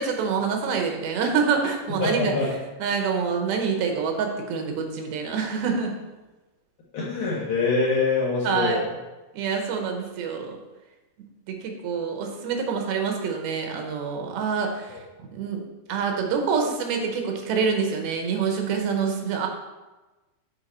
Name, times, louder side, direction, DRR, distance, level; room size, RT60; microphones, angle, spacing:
voice 1, 0.0-2.3 2.8-5.9 8.4-8.8 9.3-10.6 11.5-15.0 15.3-15.6 15.9-19.5, right 5 dB, 85° right, 3 dB, 2.8 m, -26 dB
voice 2, 2.0-2.5 6.9-8.8 14.9-15.0, left 4 dB, 65° left, -7 dB, 1.4 m, -24 dB
8.0 x 4.5 x 4.3 m, 1.1 s
omnidirectional pair, 4.3 m